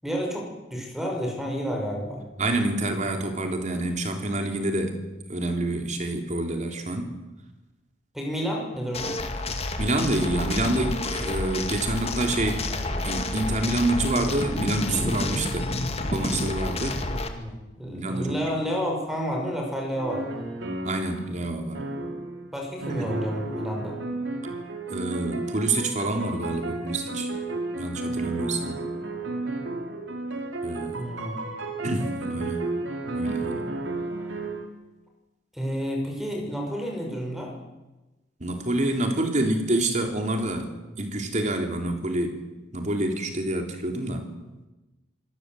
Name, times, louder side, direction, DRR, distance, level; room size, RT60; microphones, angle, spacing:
voice 1, 0.0-2.2 8.1-9.2 17.1-20.4 22.5-24.0 31.0-31.4 35.5-37.5, equal, ahead, 1 dB, 5.7 m, -30 dB
voice 2, 2.4-5.0 5.3-7.1 9.8-12.7 13.0-15.7 16.1-17.0 17.9-18.4 20.8-21.8 22.9-23.1 24.9-27.3 27.7-28.8 30.6-31.1 31.8-32.7 33.1-33.6 38.4-40.7 41.0-42.4 42.7-44.3, right 1 dB, 40° right, 5 dB, 3.5 m, -27 dB
sound 1, 8.9-17.3, left 2 dB, 30° left, 2.1 m, -29 dB
sound 2, 20.0-21.3 21.7-22.5 22.8-34.6, right 2 dB, 70° right, 3.5 m, -33 dB
26.0 x 18.5 x 7.9 m, 1.1 s
head